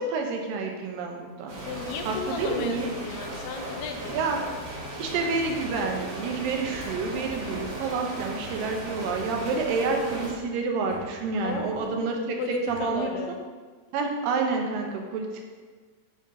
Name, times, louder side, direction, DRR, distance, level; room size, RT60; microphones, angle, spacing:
voice 1, 0.0-1.5 2.1-2.9 4.1-4.4 5.0-12.4 12.7-13.1 13.9-15.4, right 4 dB, 80° right, 2 dB, 2.4 m, -28 dB
sound 1, 1.5-10.3, right 1 dB, 55° right, 2.3 m, -37 dB
voice 2, 1.7-4.2 11.4-13.4, left 5 dB, 80° left, 5 dB, 2.3 m, -35 dB
sound 2, 6.4-8.1 8.4-9.6 10.9-11.9 12.7-13.1, left 1 dB, 60° left, 0.9 m, -45 dB
6.5 x 3.7 x 5.3 m, 1.5 s
omnidirectional pair, 4.1 m